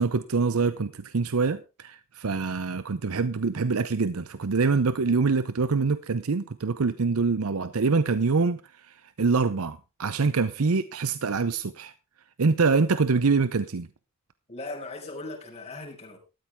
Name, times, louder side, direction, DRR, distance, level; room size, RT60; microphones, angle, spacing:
voice 1, 0.0-11.9 12.4-13.9, right 4 dB, 90° right, 0.7 m, -25 dB
voice 2, 14.5-16.2, left 2 dB, 30° left, 4.6 m, -38 dB
13.5 x 13.0 x 3.6 m
head